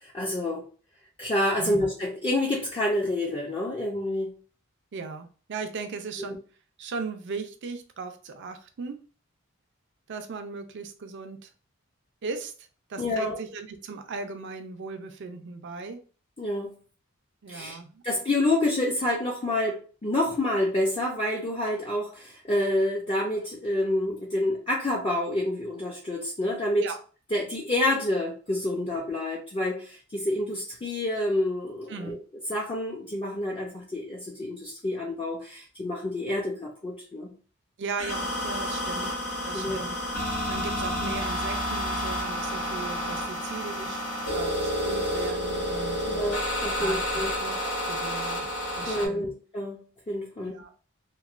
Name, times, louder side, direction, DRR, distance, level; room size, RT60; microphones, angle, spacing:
voice 1, 0.0-0.6 1.2-4.3 13.0-13.4 16.4-16.7 17.5-17.8 18.0-26.8 27.3-32.2 32.5-37.3 39.0-39.1 39.5-39.9 46.0-47.3 48.9-50.6, left 1 dB, 25° left, -3 dB, 0.5 m, -28 dB
voice 2, 4.9-6.4 6.8-9.0 10.1-11.5 12.2-16.0 17.4-18.0 26.8-27.0 31.9-32.2 37.8-39.1 39.4-39.9 40.3-46.0 46.8-48.5 48.7-49.3 50.4-50.7, right 4 dB, 60° right, 7 dB, 0.4 m, -37 dB
sound 1, 38.0-49.1, equal, 85° left, 1.1 m, -30 dB
3.0 x 2.1 x 2.4 m, 0.38 s
head